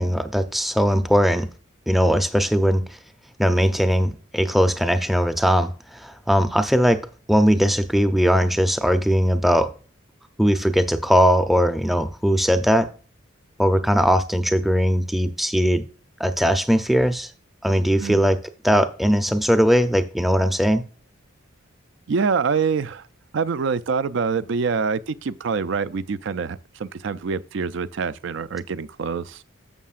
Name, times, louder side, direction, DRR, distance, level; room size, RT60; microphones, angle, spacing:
voice 1, 0.0-1.5 1.9-2.8 3.4-9.8 10.4-12.9 13.6-15.9 16.2-17.3 17.6-18.4 18.6-20.8, equal, ahead, 0.5 m, -19 dB
voice 2, 22.1-23.1 23.3-29.4, right 5 dB, 60° right, 0.4 m, -25 dB
11.0 x 7.4 x 2.5 m
head